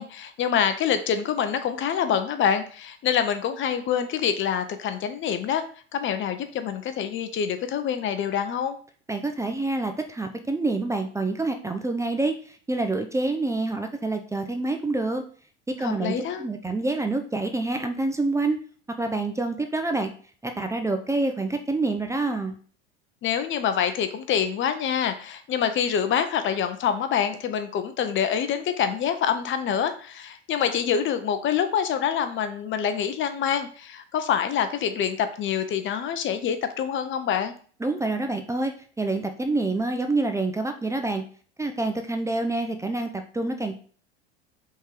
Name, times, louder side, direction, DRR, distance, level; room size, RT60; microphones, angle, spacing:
voice 1, 0.0-5.6 5.9-8.8 15.8-16.4 23.2-37.5, left 8 dB, 35° left, 9 dB, 0.8 m, -26 dB
voice 2, 9.1-12.4 12.7-15.2 15.8-16.1 16.4-18.6 19.0-20.1 20.4-22.5 37.8-41.2 41.6-43.8, right 2 dB, 10° right, 5 dB, 0.8 m, -27 dB
5.3 x 3.9 x 4.8 m, 0.43 s
hypercardioid pair, 80°, 33 cm